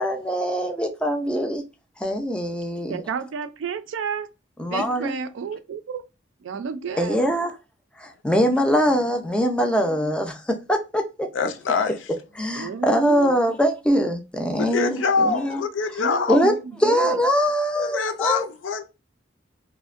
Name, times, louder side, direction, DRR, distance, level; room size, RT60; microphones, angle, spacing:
voice 1, 0.0-1.6 2.0-3.0 4.6-5.1 7.0-7.5 8.0-10.4 10.7-11.3 12.4-15.6 16.3-16.5 16.8-18.4, equal, 5° left, 0.4 m, -22 dB
voice 2, 2.9-4.3 4.7-6.0 6.4-7.2 8.4-8.6 9.8-10.1 12.6-13.3 16.0-17.2, right 5 dB, 85° right, 0.3 m, -31 dB
voice 3, 11.3-12.0 14.6-16.5 17.8-18.9, left 5 dB, 80° left, 0.4 m, -24 dB
2.6 x 2.1 x 2.4 m
head